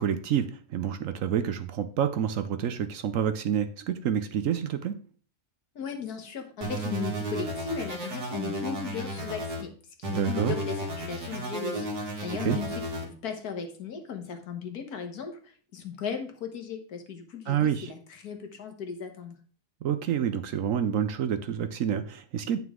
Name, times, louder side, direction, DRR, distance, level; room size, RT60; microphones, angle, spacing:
voice 1, 0.0-5.0 10.1-10.6 12.4-12.6 17.5-17.9 19.8-22.6, right 9 dB, 65° right, 10 dB, 0.9 m, -28 dB
voice 2, 5.8-9.7 10.1-19.4, left 6 dB, 75° left, 4 dB, 1.8 m, -37 dB
sound 1, 6.6-9.6 10.0-13.0, right 1 dB, 85° right, 2.7 m, -33 dB
9.3 x 5.8 x 3.6 m, 0.42 s
omnidirectional pair, 1.6 m